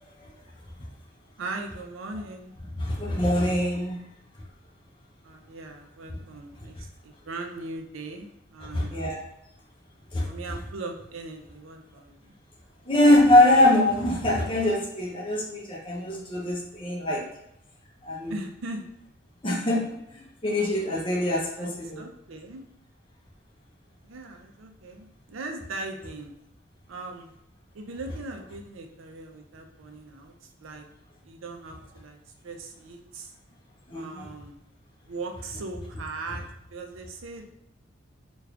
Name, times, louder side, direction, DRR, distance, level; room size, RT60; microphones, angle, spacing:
voice 1, 1.4-2.5 5.2-9.2 10.2-12.3 18.3-18.9 21.6-21.7 22.0-22.6 24.0-26.3 26.9-27.3 27.7-30.8 31.2-32.2 32.4-33.3 33.9-34.5 35.0-36.4 36.7-37.5, right 3 dB, 85° right, 4 dB, 0.5 m, -39 dB
voice 2, 2.8-4.1 8.7-9.3 10.1-10.2 12.9-17.2 18.0-18.3 19.4-22.1 33.9-34.3, left 1 dB, 25° left, -3 dB, 0.7 m, -23 dB
3.5 x 2.4 x 3.4 m, 0.78 s
head